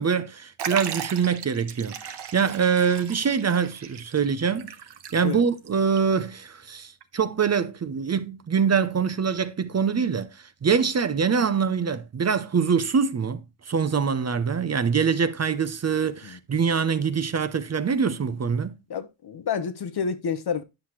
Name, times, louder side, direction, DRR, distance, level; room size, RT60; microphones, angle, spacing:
voice 1, 0.0-4.7 5.1-18.7, right 6 dB, 30° right, 0.6 m, -24 dB
Liquid, 0.6-5.7 6.0-6.1 7.0-7.1, right 8 dB, 55° right, 0.9 m, -37 dB
voice 2, 18.9-20.6, left 6 dB, 50° left, 1.0 m, -29 dB
10.0 x 5.6 x 3.1 m
cardioid pair, 80°, 50 cm